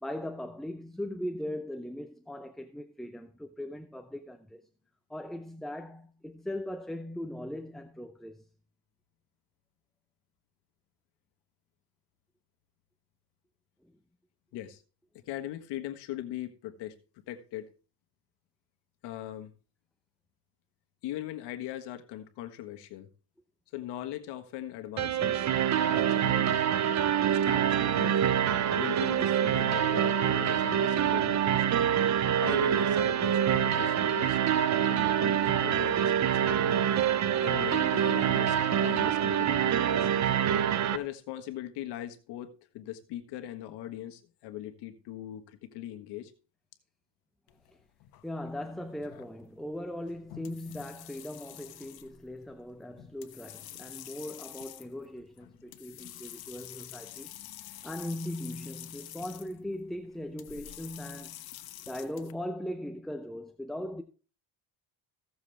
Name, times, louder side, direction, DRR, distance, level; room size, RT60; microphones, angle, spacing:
voice 1, 0.0-4.6 5.1-8.5 48.2-57.3 57.8-61.4 61.9-64.0, left 1 dB, ahead, 0.7 m, -39 dB
voice 2, 15.3-17.0 17.3-17.7 19.0-19.5 21.0-23.1 23.7-25.5 25.9-26.6 27.3-28.2 28.8-31.8 32.4-34.4 34.8-36.8 37.4-40.3 40.9-46.3, left 13 dB, 85° left, 1.5 m, -40 dB
sound 1, 25.0-41.0, right 9 dB, 45° right, 0.7 m, -26 dB
sound 2, 47.5-62.3, left 12 dB, 65° left, 1.2 m, -48 dB
16.0 x 7.1 x 3.4 m
cardioid pair, 115°, 40 cm